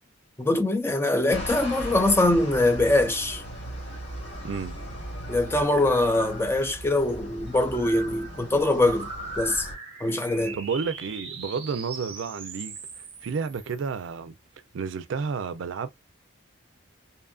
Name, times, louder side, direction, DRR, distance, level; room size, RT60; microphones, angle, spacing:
voice 1, 0.4-3.4 5.3-9.1 9.4-9.7 10.0-10.6, left 2 dB, 10° left, 0.4 m, -23 dB
sound 1, 1.3-9.8, equal, 55° left, 1.8 m, -37 dB
voice 2, 4.4-4.8 10.5-12.8 13.2-14.3 14.7-15.9, right 5 dB, 75° right, 0.4 m, -31 dB
sound 2, 8.6-14.1, right 4 dB, 25° right, 0.6 m, -40 dB
2.7 x 2.4 x 2.3 m
head